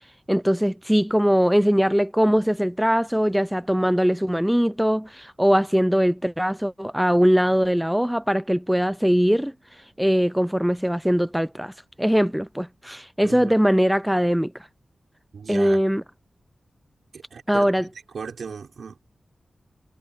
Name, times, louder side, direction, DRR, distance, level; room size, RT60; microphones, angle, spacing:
voice 1, 0.3-9.5 10.0-11.7 12.0-14.5 15.5-16.0 17.5-17.9, equal, 5° right, 0.6 m, -21 dB
voice 2, 13.2-13.5 15.3-15.8 17.1-17.7 18.1-19.0, right 5 dB, 80° right, 5.3 m, -36 dB
wide cardioid pair, 70°, 0 cm